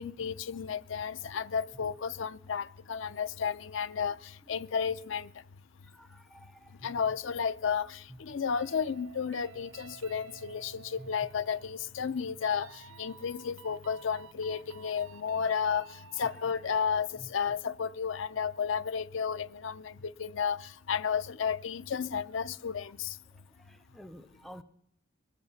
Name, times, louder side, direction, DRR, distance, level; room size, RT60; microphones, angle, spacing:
voice 1, 0.0-5.3 6.8-23.2, left 6 dB, 70° left, 0.5 m, -33 dB
voice 2, 5.9-6.7 11.0-11.1 23.7-24.6, equal, ahead, 0.5 m, -50 dB
sound 1, 8.5-17.1, right 6 dB, 85° right, 0.6 m, -53 dB
22.0 x 8.2 x 6.9 m
head